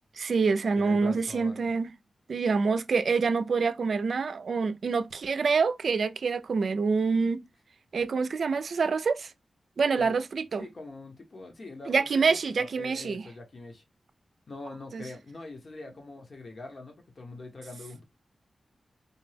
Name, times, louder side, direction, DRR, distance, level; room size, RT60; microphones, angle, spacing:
voice 1, 0.2-1.9 2.3-7.4 7.9-9.3 9.8-10.7 11.9-13.2 14.9-15.0, right 4 dB, 70° right, 0.4 m, -26 dB
voice 2, 0.8-1.7 10.0-10.2 10.6-13.8 14.5-18.0, left 2 dB, 55° left, 1.2 m, -43 dB
4.3 x 2.2 x 3.3 m
cardioid pair, 75°, 0 cm